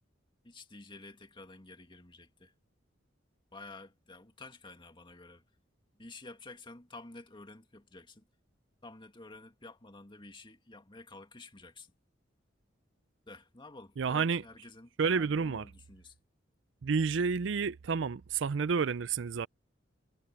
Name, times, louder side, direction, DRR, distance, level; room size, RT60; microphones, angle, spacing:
voice 1, 0.4-2.5 3.5-5.4 6.0-8.3 8.8-11.9 13.3-16.2, left 2 dB, 25° left, 2.2 m, -51 dB
voice 2, 14.0-14.4 15.0-15.7 16.8-19.5, right 5 dB, 70° right, 0.5 m, -30 dB
head